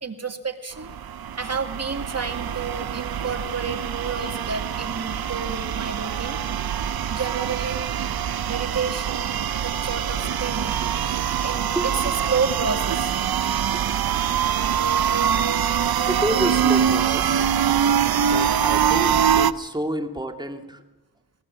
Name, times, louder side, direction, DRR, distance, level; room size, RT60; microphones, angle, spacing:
voice 1, 0.0-0.9 1.4-6.4 7.1-8.0 8.5-9.3 9.6-10.8 11.4-11.7 12.3-13.1 18.1-18.2, right 5 dB, 40° right, 7 dB, 2.3 m, -30 dB
sound 1, 0.8-19.5, right 8 dB, 70° right, 0.7 m, -24 dB
voice 2, 11.7-12.2 13.7-13.8 16.1-17.5 18.2-20.8, right 1 dB, 10° right, 5 dB, 2.3 m, -29 dB
19.5 x 19.0 x 7.5 m, 1.1 s
cardioid pair, 50°, 38 cm